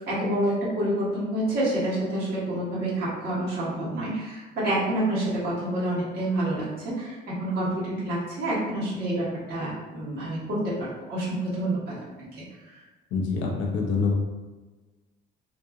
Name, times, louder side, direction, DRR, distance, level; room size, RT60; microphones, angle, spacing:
voice 1, 0.1-12.8, right 1 dB, 55° right, -8 dB, 1.4 m, -28 dB
voice 2, 13.1-14.1, left 4 dB, 80° left, 0 dB, 0.5 m, -25 dB
2.8 x 2.5 x 2.3 m, 1.2 s
cardioid pair, 145°, 19 cm